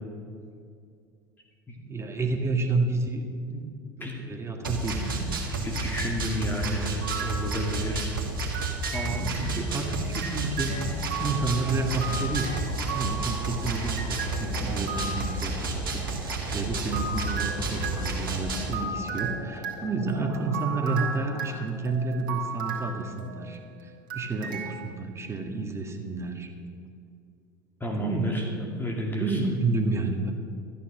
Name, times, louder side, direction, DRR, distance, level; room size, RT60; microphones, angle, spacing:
voice 1, 1.8-3.3 4.0-5.4 9.1-12.5 12.9-26.5 27.9-28.6 29.1-30.3, right 3 dB, 25° right, 4 dB, 2.0 m, -30 dB
sound 1, 4.6-18.7, right 3 dB, 90° right, 1.7 m, -31 dB
voice 2, 4.7-8.1 8.9-9.2 27.8-28.4 28.8-29.5, equal, 20° left, -1 dB, 2.4 m, -32 dB
sound 2, 7.0-8.1 8.5-15.5 16.5-23.7 24.1-24.7, right 5 dB, 75° right, 2.2 m, -36 dB
sound 3, 10.8-21.6, equal, 75° left, 3.6 m, -44 dB
13.0 x 9.4 x 6.3 m, 2.3 s
hypercardioid pair, 75°, 11 cm